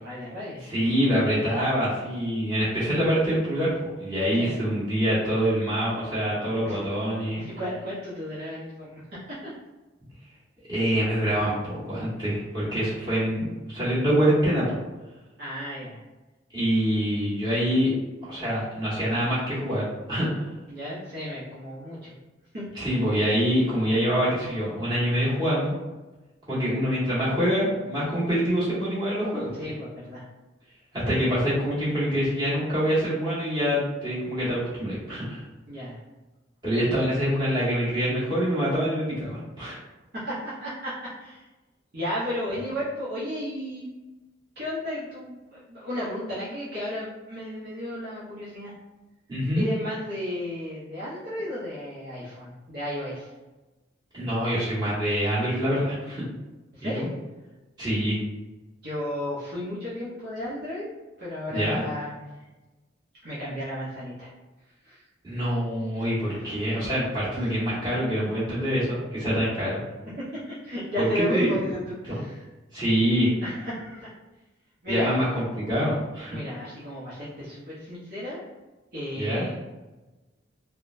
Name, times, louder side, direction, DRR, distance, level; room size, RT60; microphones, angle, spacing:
voice 1, 0.0-0.6 4.3-4.6 6.6-6.8 7.4-9.0 9.3-9.5 15.4-16.0 20.7-22.1 22.5-22.6 29.5-30.2 35.7-36.0 40.1-41.5 41.9-43.9 44.6-48.7 49.5-53.3 56.7-57.1 58.8-60.9 61.2-62.2 63.2-64.3 64.8-65.0 66.0-66.7 70.2-72.5 73.4-74.1 74.8-75.2 76.3-78.4 78.9-79.5, left 1 dB, 55° right, -10 dB, 0.8 m, -34 dB
voice 2, 0.7-3.7 4.0-7.4 10.7-14.8 16.5-17.9 18.3-20.4 22.7-25.7 26.5-29.5 30.9-35.4 36.6-39.8 49.3-49.6 54.1-56.2 56.8-57.1 57.8-58.2 61.5-61.8 65.2-69.8 71.0-71.6 72.1-72.2 72.7-73.3 74.9-76.4 79.2-79.4, equal, 20° right, -11 dB, 1.5 m, -25 dB
3.6 x 2.2 x 2.6 m, 1.1 s
head